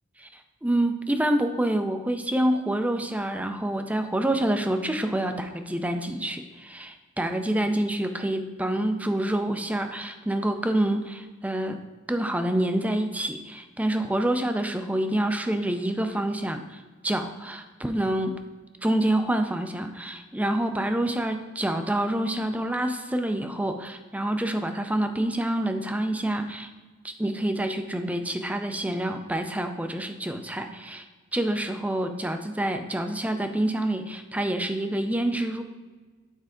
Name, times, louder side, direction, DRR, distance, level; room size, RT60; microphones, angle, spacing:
voice 1, 0.6-11.8 12.1-18.4 18.8-26.7 27.0-31.0 31.3-35.6, right 1 dB, 5° right, 7 dB, 0.5 m, -27 dB
8.9 x 4.6 x 3.8 m, 1.3 s
head